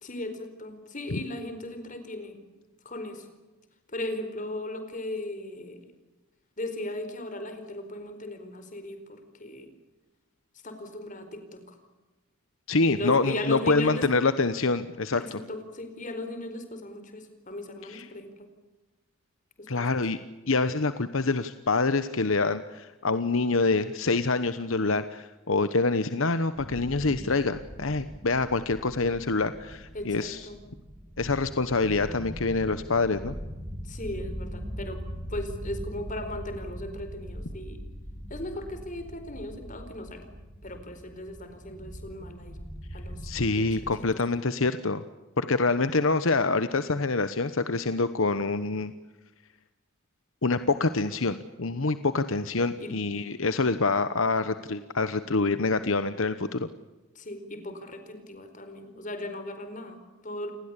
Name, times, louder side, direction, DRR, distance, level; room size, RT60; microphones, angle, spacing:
voice 1, 0.0-2.6 2.8-3.3 3.9-5.8 6.6-9.7 10.6-11.8 12.9-14.1 15.2-18.5 19.6-20.0 29.9-30.6 33.8-35.0 35.3-37.8 38.3-40.3 40.6-42.6 42.9-43.3 43.5-43.8 44.1-44.2 52.8-52.9 57.1-60.5, left 1 dB, 35° left, 8 dB, 4.6 m, -37 dB
voice 2, 12.7-15.4 17.9-18.0 19.7-20.2 20.5-30.5 31.2-33.3 43.2-45.0 45.4-48.9 50.4-56.7, left 3 dB, 70° left, 12 dB, 1.1 m, -26 dB
sound 1, 26.5-44.0, equal, 10° right, 6.2 m, -41 dB
29.5 x 20.0 x 8.4 m, 1.1 s
head